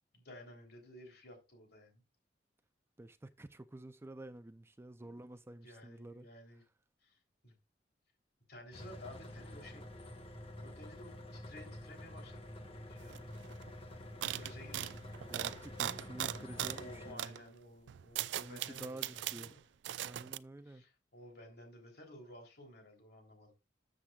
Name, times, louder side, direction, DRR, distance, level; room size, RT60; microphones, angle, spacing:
voice 1, 0.1-2.0 5.0-5.2 5.6-6.6 7.0-7.6 8.5-9.9 10.6-13.1 14.4-15.1 16.6-19.6 20.6-23.5, left 1 dB, 65° left, 3.3 m, -54 dB
voice 2, 3.0-6.3 15.3-17.4 18.4-19.5 20.0-20.9, right 1 dB, 15° right, 0.4 m, -50 dB
sound 1, 8.7-17.1, left 1 dB, 35° left, 1.3 m, -48 dB
sound 2, 13.1-13.2 13.4-13.7 14.2-16.9 17.2-17.4 17.9-19.5 19.8-20.4, right 12 dB, 85° right, 0.4 m, -39 dB
13.0 x 7.5 x 2.3 m
head